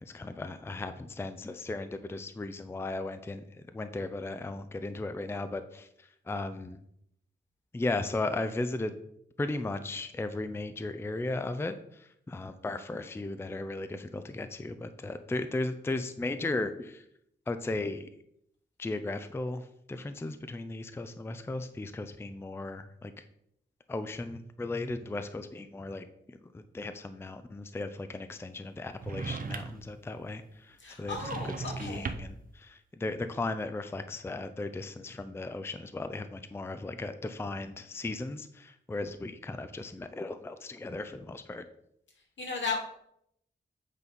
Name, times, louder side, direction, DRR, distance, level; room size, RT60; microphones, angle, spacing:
voice 1, 0.0-3.4 3.7-6.8 7.7-9.0 9.4-17.0 17.5-18.1 18.8-23.1 23.9-31.4 31.8-41.6, left 2 dB, 15° left, 10 dB, 0.4 m, -36 dB
sound 1, 29.0-29.9 31.0-32.5, right 4 dB, 45° right, 0.6 m, -38 dB
voice 2, 30.8-32.1 42.4-42.8, left 4 dB, 80° left, 0 dB, 2.1 m, -35 dB
8.2 x 4.0 x 5.3 m, 0.73 s
wide cardioid pair, 145°, 19 cm